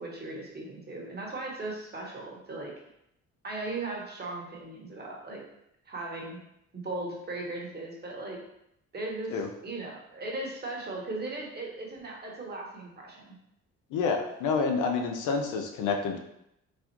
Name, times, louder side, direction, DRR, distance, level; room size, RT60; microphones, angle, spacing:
voice 1, 0.0-2.7 3.4-5.4 5.9-6.4 6.7-8.4 8.9-13.3, right 2 dB, 35° right, -2 dB, 1.1 m, -37 dB
voice 2, 13.9-16.2, left 5 dB, 85° left, 3 dB, 0.6 m, -28 dB
4.0 x 2.4 x 2.9 m, 0.79 s
cardioid pair, 90°, 30 cm